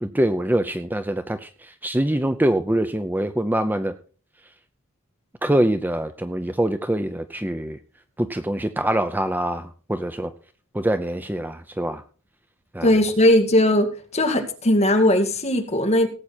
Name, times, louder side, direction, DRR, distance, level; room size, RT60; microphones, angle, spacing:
voice 1, 0.0-1.5 1.8-3.9 5.4-7.8 8.2-10.3 10.7-12.0 12.7-12.9, right 1 dB, 10° right, 9 dB, 0.6 m, -24 dB
voice 2, 12.8-13.9 14.1-16.1, left 1 dB, 30° left, 4 dB, 2.2 m, -18 dB
18.0 x 8.4 x 4.4 m, 0.41 s
head